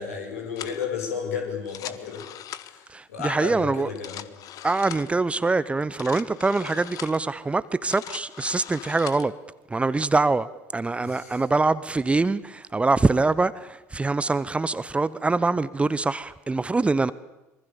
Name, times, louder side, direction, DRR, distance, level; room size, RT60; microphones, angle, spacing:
voice 1, 0.0-2.3 2.6-2.8 3.1-4.2 4.5-4.7 11.0-11.4, left 6 dB, 70° left, 6.0 m, -32 dB
sound 1, 0.6-0.9 1.6-2.9 3.8-5.2 5.8-7.2 7.7-9.3, left 11 dB, 45° left, 1.5 m, -40 dB
voice 2, 2.9-3.9 4.6-9.3 9.7-17.1, right 3 dB, 15° right, 0.9 m, -24 dB
26.0 x 24.0 x 7.1 m
figure-of-eight pair, 65°, 8 cm